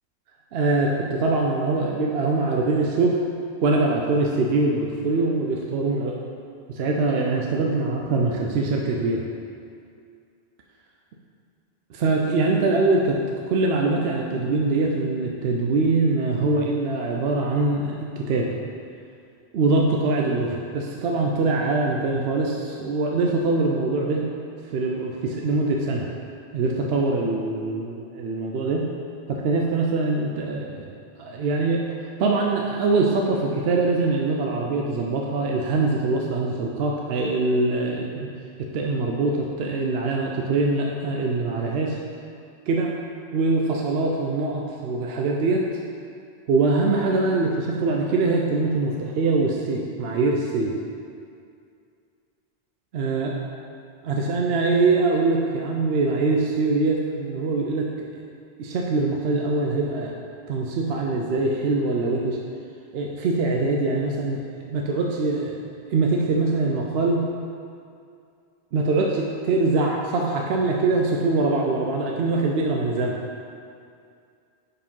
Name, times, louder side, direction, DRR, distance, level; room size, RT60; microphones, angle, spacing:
voice 1, 0.5-3.2 3.6-6.2 6.7-9.2 11.9-13.2 13.5-18.5 19.5-24.3 24.7-26.0 26.5-28.9 29.3-30.8 31.2-38.3 38.6-42.0 42.7-42.9 43.3-45.8 46.5-50.7 52.9-53.3 54.0-58.1 58.6-60.1 60.5-62.4 62.9-65.6 65.9-67.3 68.7-73.2, right 3 dB, 75° right, -1 dB, 0.8 m, -23 dB
5.2 x 4.6 x 5.4 m, 2.4 s
omnidirectional pair, 1.1 m